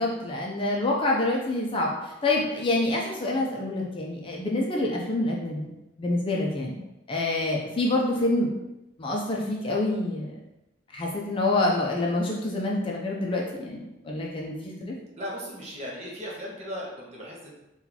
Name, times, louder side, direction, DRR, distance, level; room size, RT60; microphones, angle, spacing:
voice 1, 0.0-5.7 6.0-6.8 7.1-8.5 9.0-10.3 10.9-14.9, left 2 dB, 25° left, -2 dB, 0.4 m, -27 dB
voice 2, 15.2-17.5, equal, 35° right, -3 dB, 0.8 m, -37 dB
2.9 x 2.3 x 3.8 m, 0.95 s
head